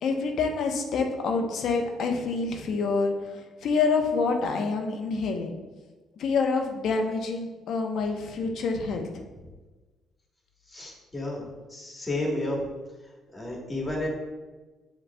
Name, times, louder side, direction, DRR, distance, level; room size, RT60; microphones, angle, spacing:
voice 1, 0.0-5.5 6.2-9.1, left 4 dB, 65° left, 4 dB, 0.7 m, -27 dB
voice 2, 10.7-12.7 13.3-14.1, left 1 dB, 20° left, -1 dB, 1.4 m, -31 dB
7.5 x 3.1 x 2.3 m, 1.2 s
cardioid pair, 95°, 0 cm